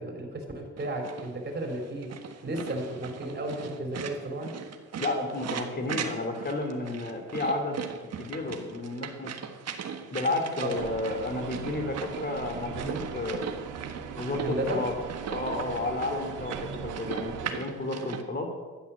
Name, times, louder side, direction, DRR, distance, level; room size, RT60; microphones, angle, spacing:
voice 1, 0.0-2.1 2.4-4.5 10.6-10.8 14.4-14.8 16.4-16.5, right 1 dB, 35° right, 2 dB, 4.3 m, -33 dB
sound 1, 0.8-18.2, right 7 dB, 55° right, 1.5 m, -39 dB
voice 2, 5.0-9.4 10.1-13.5 14.2-14.9 15.3-18.5, left 2 dB, 30° left, 5 dB, 3.1 m, -32 dB
sound 2, 10.7-17.5, right 6 dB, 85° right, 1.8 m, -39 dB
12.5 x 10.0 x 7.5 m, 1.4 s
cardioid pair, 90°, 30 cm